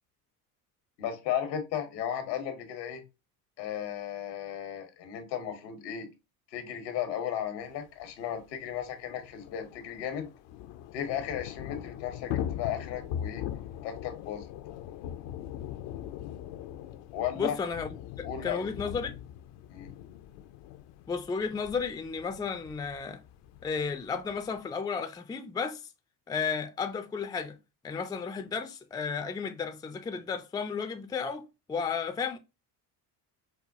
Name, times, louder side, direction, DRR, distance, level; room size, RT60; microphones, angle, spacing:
voice 1, 1.0-3.0 3.6-6.1 6.5-10.3 10.9-13.4 13.8-14.5 17.1-17.6 18.2-18.7 19.7-19.9, left 9 dB, 85° left, 1.2 m, -35 dB
Thunder / Rain, 8.0-8.1 8.3-8.4 8.7-24.6, left 10 dB, 60° left, 0.6 m, -41 dB
voice 2, 17.4-19.2 21.1-23.2 23.6-25.8 26.3-27.6 27.8-32.4, left 5 dB, 10° left, 0.4 m, -33 dB
4.7 x 2.2 x 2.6 m
hypercardioid pair, 75°, 49 cm